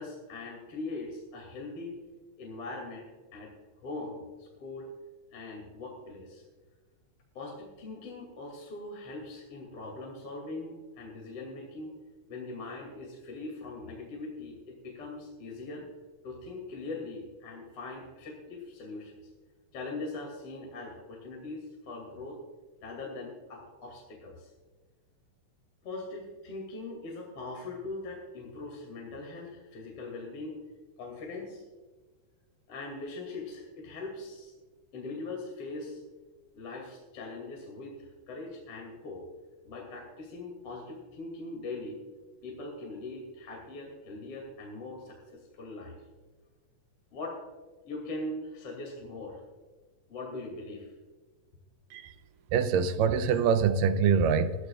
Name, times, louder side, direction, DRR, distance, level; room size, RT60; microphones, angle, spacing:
voice 1, 0.0-1.9 2.4-3.1 3.3-3.5 3.8-4.9 5.3-6.4 7.3-12.0 12.3-15.9 16.2-19.1 19.7-22.4 22.8-24.5 25.8-30.6 31.0-31.6 32.7-34.5 34.9-36.0 36.5-39.2 39.6-42.0 42.4-46.0 47.1-47.4 47.8-49.4 50.1-50.9, left 2 dB, 45° left, 3.3 m, -41 dB
voice 2, 52.5-54.5, right 6 dB, 85° right, 2.4 m, -24 dB
22.0 x 13.0 x 2.4 m
omnidirectional pair, 3.8 m